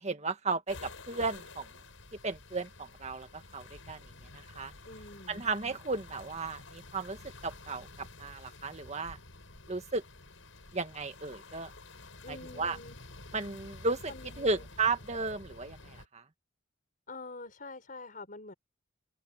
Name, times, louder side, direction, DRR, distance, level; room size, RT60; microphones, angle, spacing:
voice 1, 0.0-1.7 2.2-4.0 4.3-4.7 5.3-9.2 9.7-10.0 10.7-11.7 12.3-12.8 13.3-16.2, right 3 dB, 35° right, 1.8 m, -34 dB
sound 1, 0.7-16.1, left 2 dB, 85° left, 6.1 m, -50 dB
voice 2, 4.9-5.4 12.2-13.0 14.1-14.7 17.1-18.5, left 3 dB, 45° left, 5.5 m, -46 dB
open air
head